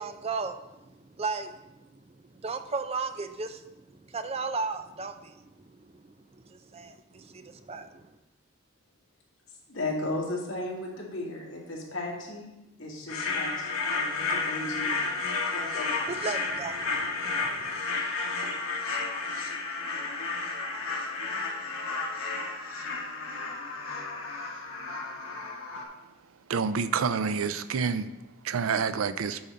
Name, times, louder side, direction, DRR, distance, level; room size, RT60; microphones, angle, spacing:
voice 1, 0.0-1.8 2.3-8.0 16.1-17.8, right 4 dB, 30° right, 0.5 m, -36 dB
voice 2, 9.7-12.5 12.8-16.1 17.9-18.5, left 2 dB, 75° left, 2.1 m, -36 dB
sound 1, 13.1-25.8, left 3 dB, 90° left, 1.3 m, -32 dB
voice 3, 26.5-28.1 28.4-29.4, right 6 dB, 85° right, 0.5 m, -28 dB
8.7 x 4.3 x 5.3 m
head